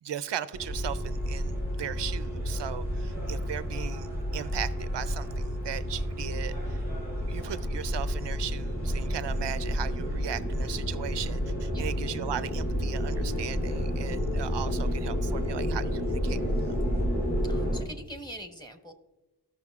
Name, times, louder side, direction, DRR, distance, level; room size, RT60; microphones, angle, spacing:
voice 1, 0.0-6.8 7.2-16.4 16.7-16.8, right 9 dB, 80° right, 14 dB, 0.5 m, -37 dB
sound 1, 0.5-17.8, equal, 40° left, 2.9 m, -30 dB
voice 2, 17.4-18.9, equal, 10° left, 4 dB, 1.0 m, -43 dB
15.0 x 6.2 x 2.4 m, 1.1 s
wide cardioid pair, 100°, 42 cm